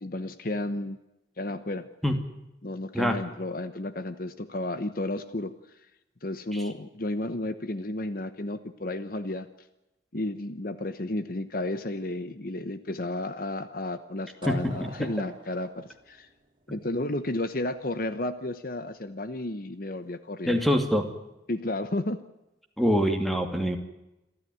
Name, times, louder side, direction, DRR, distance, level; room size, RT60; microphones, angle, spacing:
voice 1, 0.0-1.0 1.4-1.9 2.6-5.5 6.2-9.7 10.1-16.3 16.7-20.6 21.5-22.2, left 1 dB, 50° left, 12 dB, 1.1 m, -32 dB
sound 1, 14.4-17.3, right 2 dB, 25° right, 2.9 m, -47 dB
voice 2, 14.5-14.9 20.5-21.1 22.8-23.8, equal, ahead, 5 dB, 2.6 m, -25 dB
27.5 x 13.0 x 9.4 m, 0.95 s
head